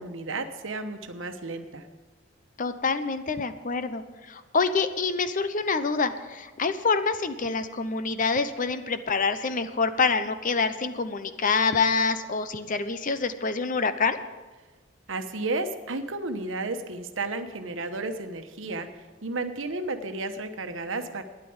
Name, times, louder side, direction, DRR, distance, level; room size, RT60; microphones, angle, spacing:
voice 1, 0.0-1.8 15.1-18.9 19.2-21.2, right 2 dB, 85° right, 7 dB, 1.1 m, -32 dB
voice 2, 2.6-14.2, left 4 dB, 45° left, 11 dB, 0.8 m, -26 dB
12.0 x 10.0 x 7.1 m, 1.3 s
head